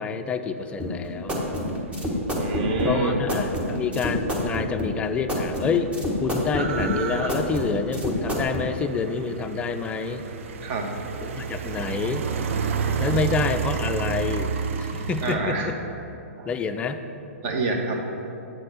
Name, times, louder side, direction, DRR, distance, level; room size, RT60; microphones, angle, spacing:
voice 1, 0.0-1.4 2.8-5.9 6.2-10.2 11.2-12.3 13.0-14.5 14.8-15.8 16.4-17.0, left 5 dB, 15° left, 7 dB, 0.4 m, -28 dB
sound 1, 0.8-8.7, equal, 15° right, 1.1 m, -28 dB
voice 2, 2.3-3.2 10.6-10.9 15.2-15.7 16.4-16.5 17.4-18.0, right 3 dB, 40° right, 2 dB, 1.1 m, -26 dB
sound 2, 4.7-4.8 5.0-15.4, right 6 dB, 60° right, 0.5 m, -30 dB
7.8 x 4.3 x 6.2 m, 2.9 s
hypercardioid pair, 120°, 8 cm